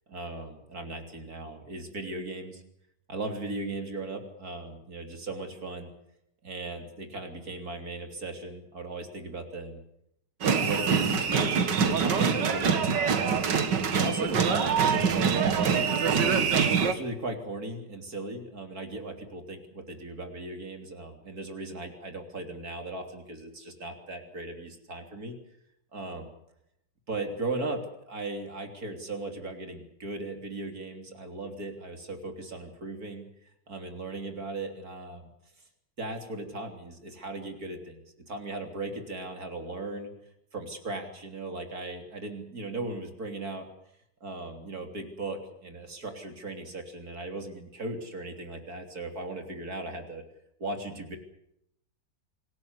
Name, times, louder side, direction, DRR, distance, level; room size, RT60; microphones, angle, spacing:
voice 1, 0.1-2.6 3.1-5.9 6.4-9.8 10.4-13.5 13.9-16.5 16.8-25.4 25.9-26.3 27.1-27.8 28.1-33.3 33.7-35.3 36.0-38.0 38.3-40.1 40.5-43.7 44.2-50.2 50.6-51.2, right 2 dB, 55° right, 5 dB, 3.8 m, -37 dB
sound 1, 10.4-16.9, right 6 dB, 85° right, 2.2 m, -25 dB
26.5 x 18.0 x 8.1 m, 0.77 s
omnidirectional pair, 1.9 m